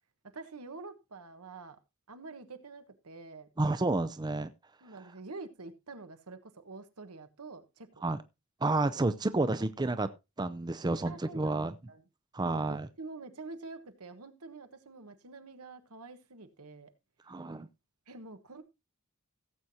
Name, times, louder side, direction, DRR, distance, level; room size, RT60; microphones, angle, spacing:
voice 1, 0.3-1.8 2.1-3.5 4.8-8.1 11.0-12.0 12.4-16.9 18.1-18.6, right 3 dB, 90° right, 9 dB, 1.3 m, -47 dB
voice 2, 3.6-4.5 8.0-8.2 8.6-10.1 10.4-11.7 12.3-12.9 17.3-17.7, right 2 dB, 20° right, 12 dB, 0.5 m, -30 dB
17.0 x 7.8 x 2.8 m, 0.24 s
head